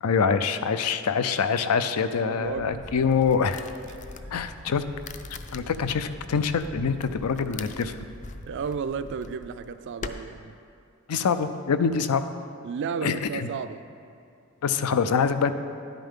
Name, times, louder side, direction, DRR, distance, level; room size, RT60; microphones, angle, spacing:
voice 1, 0.0-3.7 4.3-4.8 5.5-8.0 11.1-12.2 13.0-13.5 14.6-15.5, left 6 dB, 90° left, 11 dB, 0.5 m, -25 dB
voice 2, 2.2-2.8 3.9-4.3 4.7-4.8 8.5-10.6 12.6-13.8, right 6 dB, 55° right, 12 dB, 0.3 m, -33 dB
Wind, 2.4-9.5, equal, 65° left, 1.7 m, -45 dB
sound 1, 2.7-10.1, left 4 dB, 35° left, 0.4 m, -45 dB
10.5 x 9.0 x 3.7 m, 2.6 s
head